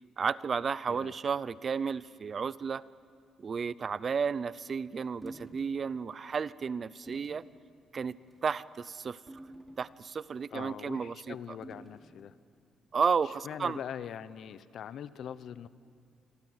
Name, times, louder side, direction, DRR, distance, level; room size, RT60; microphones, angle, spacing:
voice 1, 0.2-2.8 3.4-7.4 7.9-8.2 8.4-9.2 9.8-11.6 12.9-13.8, right 6 dB, 40° right, 19 dB, 0.5 m, -32 dB
sound 1, 5.2-5.6 6.1-6.3 7.1-7.4 8.2-8.5 9.3-10.2 11.6-12.1, right 1 dB, 10° right, 2.8 m, -48 dB
voice 2, 10.5-12.3 13.4-15.7, left 9 dB, 65° left, 15 dB, 0.8 m, -42 dB
27.0 x 23.0 x 8.0 m, 2.4 s
cardioid pair, 120°, 0 cm